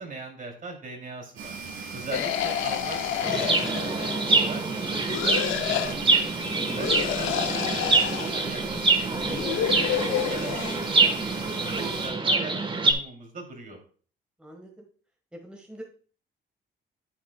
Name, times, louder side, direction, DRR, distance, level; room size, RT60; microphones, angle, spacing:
voice 1, 0.0-1.5 1.9-3.1 3.4-6.2 6.6-10.0 10.3-13.8, right 3 dB, 45° right, 2 dB, 2.7 m, -40 dB
sound 1, 1.4-12.1, right 4 dB, 85° right, 3.7 m, -39 dB
sound 2, 2.1-4.4 5.1-5.9 6.8-8.4 9.2-10.8, left 11 dB, 80° left, 0.6 m, -29 dB
Chirp tweet, 3.2-12.9, right 3 dB, 25° right, 1.2 m, -25 dB
voice 2, 14.4-14.8 15.3-15.8, right 1 dB, 5° right, 1 dB, 1.5 m, -45 dB
9.0 x 8.6 x 2.2 m, 0.43 s
cardioid pair, 90°, 20 cm